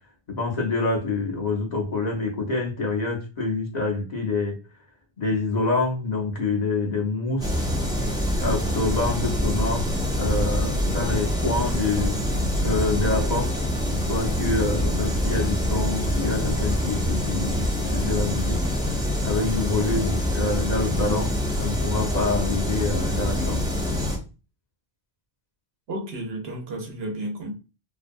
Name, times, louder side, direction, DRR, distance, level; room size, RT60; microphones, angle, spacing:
voice 1, 0.3-4.6 5.2-7.6 8.4-12.2 12.6-13.5 13.9-18.6 18.9-19.0 19.2-23.7, left 3 dB, 45° left, 0.8 m, -26 dB
sound 1, 7.4-24.2, left 1 dB, 5° right, 0.3 m, -25 dB
voice 2, 25.9-27.5, right 1 dB, 75° right, 0.9 m, -32 dB
2.6 x 2.1 x 2.5 m
omnidirectional pair, 1.0 m